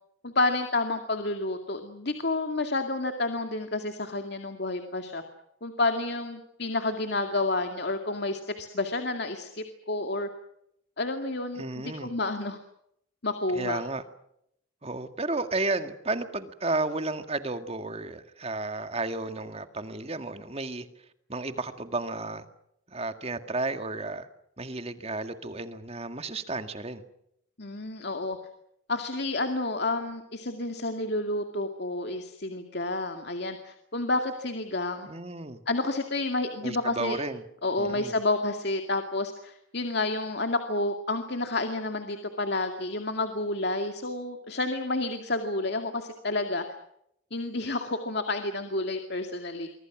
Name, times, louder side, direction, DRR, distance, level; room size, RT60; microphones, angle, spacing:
voice 1, 0.2-5.2 5.6-10.3 11.0-12.6 13.2-13.8 27.6-28.4 28.9-35.1 35.7-37.2 37.6-46.6 47.3-49.7, left 2 dB, 55° left, 6 dB, 2.3 m, -30 dB
voice 2, 11.6-12.1 13.5-14.0 14.8-20.9 21.3-22.4 22.9-24.3 24.6-27.0 35.1-35.6 36.6-37.4 37.8-38.2, right 2 dB, 30° right, 8 dB, 1.9 m, -32 dB
28.5 x 24.5 x 6.2 m, 0.75 s
head